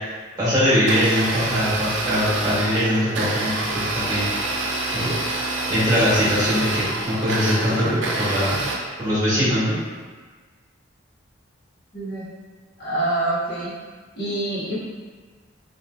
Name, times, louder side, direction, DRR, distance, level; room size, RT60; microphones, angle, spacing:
voice 1, 0.4-4.3 4.9-5.1 5.7-8.6 9.0-9.7, equal, 20° right, -12 dB, 1.4 m, -21 dB
Domestic sounds home sounds, 0.7-8.7, right 2 dB, 75° right, 0.5 m, -27 dB
voice 2, 11.9-12.2 12.8-13.7 14.1-14.8, right 2 dB, 55° left, -12 dB, 1.5 m, -25 dB
3.1 x 2.8 x 2.5 m, 1.4 s
head